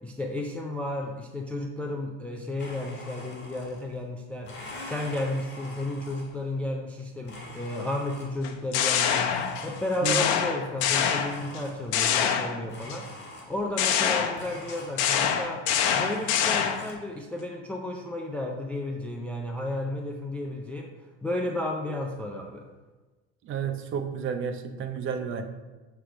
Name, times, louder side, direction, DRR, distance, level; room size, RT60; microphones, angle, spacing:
voice 1, 0.0-9.3 9.6-15.7 15.9-20.9 21.2-22.7, left 1 dB, 5° left, 1 dB, 0.3 m, -33 dB
Domestic sounds home sounds, 2.6-4.0 4.4-6.5 7.2-8.6 9.3-10.4 10.9-12.1 12.7-13.8 14.3-15.4 15.7-16.9, left 2 dB, 30° left, 1.7 m, -44 dB
sound 1, 8.4-9.7 10.0-11.6 11.9-13.0 13.8-16.9, left 8 dB, 70° left, 0.8 m, -25 dB
voice 2, 10.0-10.3 23.4-25.4, right 6 dB, 35° right, 7 dB, 0.7 m, -31 dB
7.6 x 3.4 x 4.8 m, 1.2 s
supercardioid pair, 125°, 35 cm